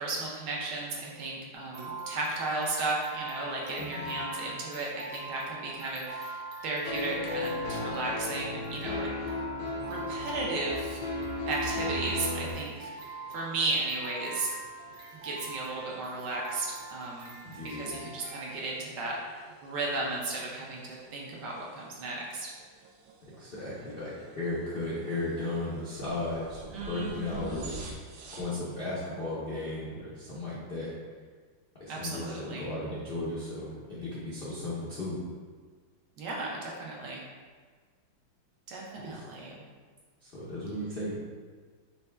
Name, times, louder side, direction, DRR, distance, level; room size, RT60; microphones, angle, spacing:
voice 1, 0.0-9.4 9.9-11.0 11.5-12.9 13.3-14.5 15.1-17.4 17.6-22.5 26.7-27.7 31.9-32.7 36.2-37.2 38.7-39.6, right 2 dB, 70° right, -3 dB, 1.2 m, -35 dB
sound 1, 1.5-18.5, right 2 dB, 50° right, 1.1 m, -43 dB
voice 2, 3.8-4.1 17.4-18.0 23.4-27.7 28.3-30.9 31.8-35.2 39.0-39.2 40.2-41.1, left 2 dB, 70° left, -9 dB, 0.5 m, -35 dB
sound 2, 6.8-12.5, left 2 dB, 85° left, 1.6 m, -34 dB
sound 3, 12.3-28.6, right 2 dB, 85° right, 1.4 m, -52 dB
5.3 x 2.2 x 3.3 m, 1.5 s
omnidirectional pair, 2.1 m